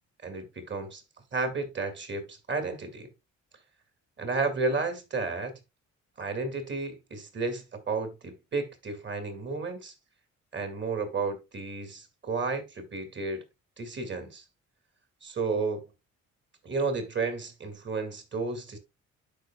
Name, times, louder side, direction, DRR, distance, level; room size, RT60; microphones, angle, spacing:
voice 1, 0.2-1.0 1.3-3.1 4.2-5.6 6.2-9.9 10.5-13.4 13.8-14.4 15.2-15.8 16.6-18.8, right 4 dB, 40° right, 2.1 m, -32 dB
12.0 x 4.9 x 2.2 m
cardioid pair, 90°, 30 cm